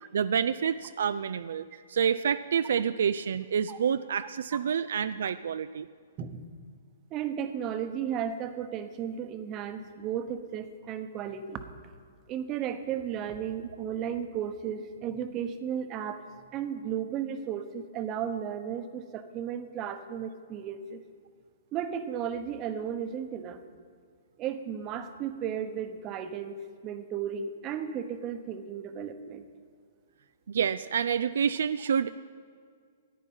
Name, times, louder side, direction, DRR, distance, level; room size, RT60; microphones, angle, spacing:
voice 1, 0.1-1.6 1.9-5.9 30.5-32.1, right 7 dB, 75° right, 12 dB, 0.3 m, -28 dB
voice 2, 7.1-11.6 12.3-16.2 16.5-21.0 21.7-23.6 24.4-26.6 26.8-29.5, right 8 dB, 30° right, 9 dB, 1.0 m, -34 dB
14.0 x 9.7 x 5.5 m, 2.1 s
hypercardioid pair, 140°, 0 cm